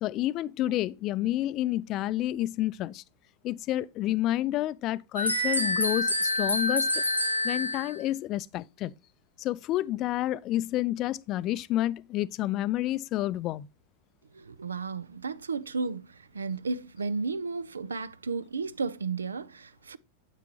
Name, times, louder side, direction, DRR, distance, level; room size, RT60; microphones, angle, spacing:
voice 1, 0.0-3.0 3.4-7.0 7.4-8.9 9.4-13.7, left 14 dB, 35° left, 0.5 m, -29 dB
sound 1, 5.2-8.0, left 1 dB, 90° right, 1.3 m, -27 dB
voice 2, 14.3-20.0, right 4 dB, 75° right, 0.5 m, -33 dB
9.3 x 8.4 x 2.9 m
figure-of-eight pair, 90°, 0 cm